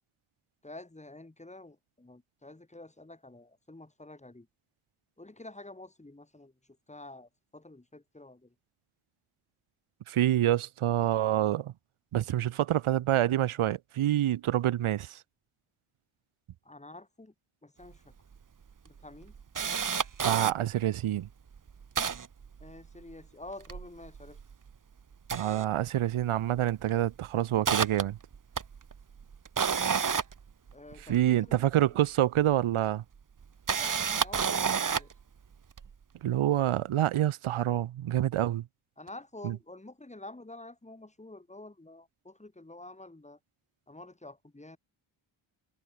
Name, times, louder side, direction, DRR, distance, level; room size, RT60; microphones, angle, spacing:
voice 1, 0.6-4.5 5.2-6.5 6.9-8.5 16.6-17.3 17.6-18.1 18.8-19.3 22.6-24.4 30.7-31.6 31.9-32.1 33.7-35.1 39.0-43.4 43.9-44.8, left 2 dB, 15° left, 4.7 m, -48 dB
voice 2, 10.1-11.7 12.1-15.2 20.2-21.3 25.3-28.2 31.0-33.0 36.2-38.6 39.4-39.6, right 12 dB, 85° right, 1.4 m, -27 dB
Camera, 17.9-18.0 18.3-18.4 18.9-20.5 21.2-21.3 21.5-23.1 23.5-24.7 25.1-26.3 26.6-26.8 27.2-31.3 32.4-32.5 33.4-35.2 35.8-35.9, right 6 dB, 40° right, 1.7 m, -31 dB
cardioid pair, 95°, 48 cm